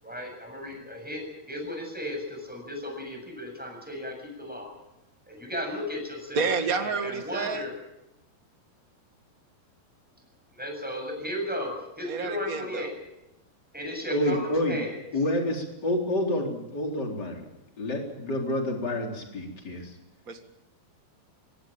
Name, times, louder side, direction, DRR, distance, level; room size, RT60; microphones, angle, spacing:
voice 1, 0.0-4.7 5.3-6.5 6.8-7.7 10.6-12.9 13.7-14.9, left 1 dB, ahead, 2 dB, 7.1 m, -35 dB
voice 2, 6.3-7.7 12.0-12.9 20.3-20.4, right 4 dB, 55° right, 6 dB, 0.9 m, -29 dB
voice 3, 14.1-14.8 15.1-17.4 17.8-19.9, left 1 dB, 25° left, 1 dB, 4.2 m, -28 dB
24.0 x 17.5 x 8.9 m, 0.92 s
omnidirectional pair, 4.6 m